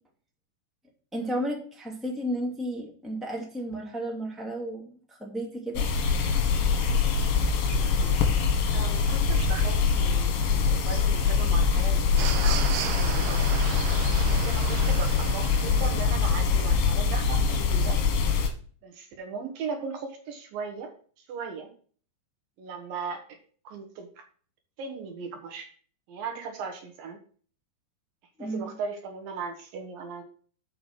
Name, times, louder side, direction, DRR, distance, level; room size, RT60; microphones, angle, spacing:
voice 1, 1.1-5.9 28.4-28.7, right 1 dB, ahead, -1 dB, 0.8 m, -33 dB
sound 1, 5.8-18.5, left 5 dB, 85° left, 3.9 m, -24 dB
voice 2, 7.6-8.2 8.7-13.6 14.3-18.0 18.8-20.9 21.3-21.7 22.6-23.4 23.6-24.1 24.8-25.7 26.1-27.2 28.4-30.2, right 5 dB, 65° right, 4 dB, 2.6 m, -38 dB
sound 2, 12.2-16.4, right 11 dB, 85° right, 2.3 m, -35 dB
7.8 x 5.8 x 6.3 m, 0.43 s
omnidirectional pair, 5.1 m